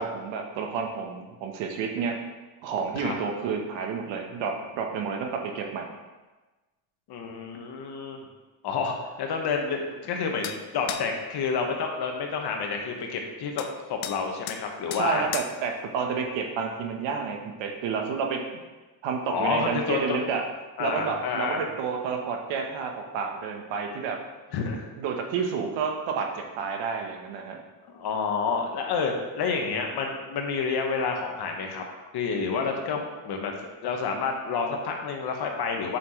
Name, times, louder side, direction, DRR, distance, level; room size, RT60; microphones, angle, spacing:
voice 1, 0.0-2.2 2.6-5.9 14.9-18.4 19.0-20.4 20.8-24.2 25.0-27.6, right 5 dB, 70° right, 2 dB, 1.4 m, -30 dB
voice 2, 7.1-8.3 8.6-15.2 19.3-20.2 20.8-21.6 24.5-24.8 27.9-31.8 32.1-36.0, left 5 dB, 55° left, 2 dB, 1.5 m, -29 dB
sound 1, 10.4-10.6 10.9-11.1 13.6-13.7 14.0-14.2 14.5-14.6 14.9-15.1 15.3-15.5, left 11 dB, 80° left, 0.7 m, -34 dB
8.4 x 5.8 x 3.3 m, 1.2 s
cardioid pair, 105°, 46 cm